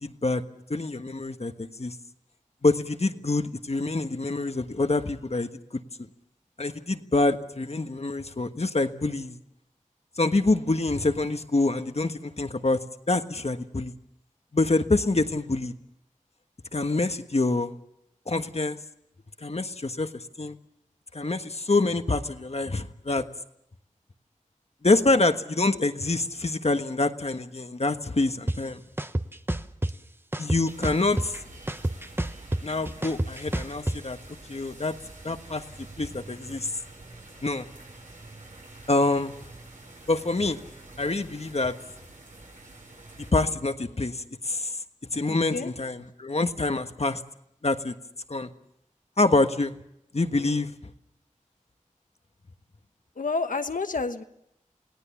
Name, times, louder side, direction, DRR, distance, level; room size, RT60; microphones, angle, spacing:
voice 1, 0.0-0.4 0.7-1.9 2.6-5.8 6.6-9.4 10.2-13.9 14.5-15.7 16.7-17.7 18.3-18.8 19.4-20.1 20.4-20.6 21.1-23.3 24.8-28.8 30.4-31.4 32.6-34.2 34.5-34.9 35.2-36.7 37.4-37.7 38.9-39.3 40.1-40.6 41.0-41.8 43.2-44.7 45.1-47.2 47.6-47.9 48.3-48.5 49.2-49.7 50.1-50.7, left 2 dB, 50° left, 8 dB, 1.4 m, -26 dB
sound 1, 28.5-28.6 29.0-29.9 30.3-31.4 31.7-34.0, right 1 dB, 15° right, 1.0 m, -28 dB
sound 2, 30.7-43.3, right 2 dB, 75° right, 6.7 m, -47 dB
voice 2, 45.3-45.7 53.2-54.2, left 4 dB, 90° left, 8 dB, 1.2 m, -29 dB
28.5 x 18.0 x 7.2 m, 0.80 s
wide cardioid pair, 45°, 13 cm